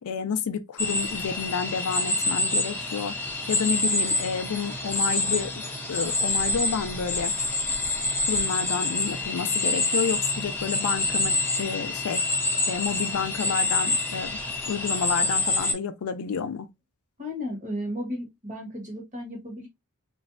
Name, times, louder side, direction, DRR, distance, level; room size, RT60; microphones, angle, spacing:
voice 1, 0.0-3.2 3.5-5.6 5.9-7.3 8.3-12.2 12.7-14.4 14.7-16.7, left 6 dB, 70° left, 0.4 m, -30 dB
sound 1, 0.8-15.7, left 2 dB, 10° left, 0.6 m, -27 dB
voice 2, 17.2-19.7, left 1 dB, 35° right, 1.2 m, -34 dB
3.1 x 2.6 x 2.4 m
head